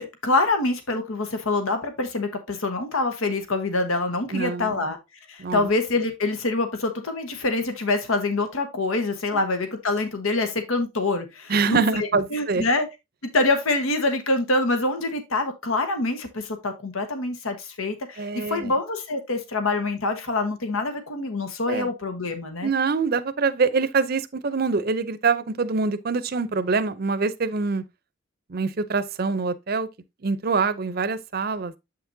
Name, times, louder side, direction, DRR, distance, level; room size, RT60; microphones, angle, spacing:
voice 1, 0.0-5.0 5.3-12.9 13.3-22.7, left 2 dB, 90° left, 1.2 m, -25 dB
voice 2, 4.3-4.8 5.4-5.7 11.5-12.7 18.2-18.7 21.7-21.9 22.6-27.8 28.5-29.9 30.2-31.7, right 4 dB, 45° right, 0.6 m, -25 dB
7.7 x 5.9 x 2.6 m
head